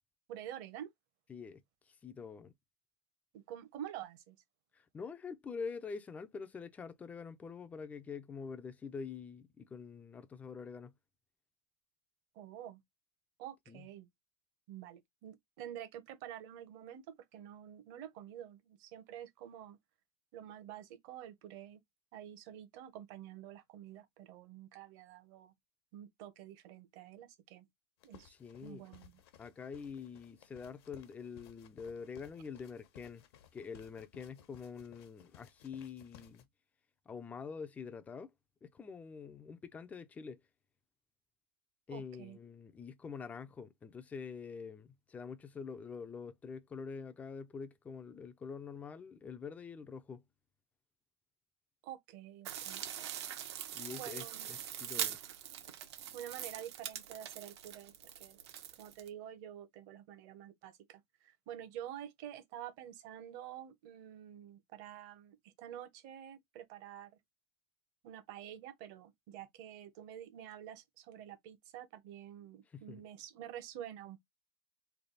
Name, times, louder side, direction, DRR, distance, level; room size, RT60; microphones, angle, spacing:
voice 1, 0.3-0.9 3.3-4.4 12.3-12.8 13.4-14.1 14.7-19.8 20.3-21.8 22.1-25.5 25.9-27.7 28.0-28.3 28.6-29.1 41.9-42.4 51.8-52.8 53.9-54.5 54.9-55.1 56.1-58.4 58.8-67.1 68.0-74.2, right 11 dB, 45° right, 0.9 m, -48 dB
voice 2, 1.3-2.5 4.7-10.9 13.7-13.9 28.2-28.9 29.4-33.2 33.5-36.4 37.1-38.3 38.6-40.4 41.9-50.2 53.7-55.2 72.7-73.0, left 5 dB, 10° left, 0.4 m, -46 dB
sound 1, 28.0-36.4, left 9 dB, 65° left, 0.9 m, -60 dB
sound 2, 52.4-59.1, right 10 dB, 75° right, 1.0 m, -42 dB
3.3 x 2.3 x 4.0 m
supercardioid pair, 150°, 14 cm